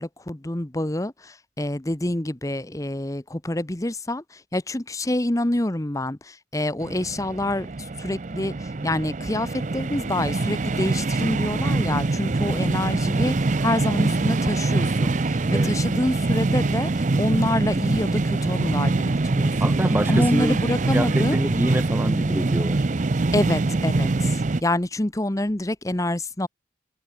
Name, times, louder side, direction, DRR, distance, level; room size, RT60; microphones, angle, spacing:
voice 1, 0.0-19.8 20.1-21.4 23.3-26.5, left 1 dB, 15° left, 0.9 m, -27 dB
sound 1, 6.8-24.6, right 3 dB, 40° right, 0.6 m, -24 dB
voice 2, 19.6-20.6 20.9-22.9, right 1 dB, 10° right, 0.9 m, -26 dB
head